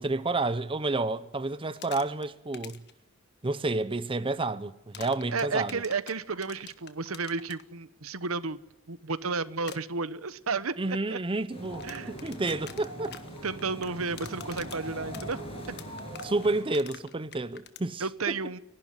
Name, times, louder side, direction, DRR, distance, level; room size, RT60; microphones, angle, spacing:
voice 1, 0.0-2.8 3.4-5.8 10.8-13.2 14.5-14.6 16.2-18.4, right 2 dB, 25° right, 0.7 m, -30 dB
sound 1, 1.6-2.2 2.5-2.9 4.9-7.6 9.6-9.8 11.6-17.8, left 8 dB, 55° left, 1.5 m, -45 dB
voice 2, 5.3-8.6 8.9-11.2 11.8-12.1 13.4-15.4 18.0-18.6, right 4 dB, 80° right, 1.1 m, -32 dB
sound 2, 11.5-16.6, right 1 dB, 30° left, 7.1 m, -41 dB
30.0 x 12.0 x 9.5 m
head